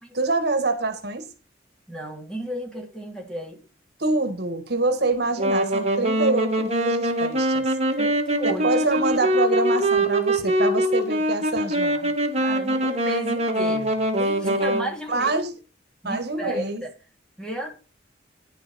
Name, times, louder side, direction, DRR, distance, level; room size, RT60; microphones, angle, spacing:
voice 1, 0.1-1.3 4.0-7.8 8.4-12.1 14.4-14.6 15.1-15.5 16.0-16.8, right 3 dB, 60° right, 1.7 m, -25 dB
voice 2, 1.9-3.6 8.0-8.7 12.4-15.3 16.0-16.9 17.4-17.7, right 1 dB, 5° left, 2.9 m, -33 dB
Wind instrument woodwind instrument, 5.4-14.9, right 1 dB, 35° right, 2.0 m, -23 dB
10.5 x 8.2 x 4.3 m
head